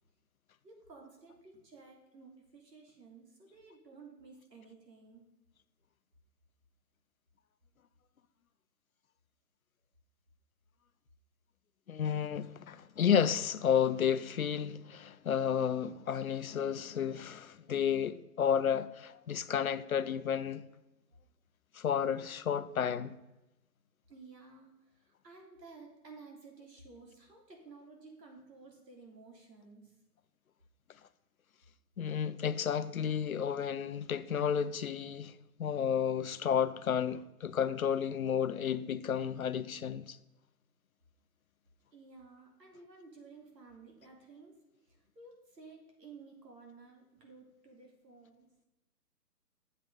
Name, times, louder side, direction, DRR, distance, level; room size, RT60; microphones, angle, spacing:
voice 1, 0.6-5.3 24.1-29.9 41.9-44.6 44.8-48.5, right 4 dB, 85° right, 3.4 m, -54 dB
voice 2, 11.9-20.6 21.7-23.2 32.0-35.3 35.6-40.2, left 8 dB, 60° left, 0.6 m, -32 dB
8.4 x 7.7 x 4.9 m
hypercardioid pair, 170°, 48 cm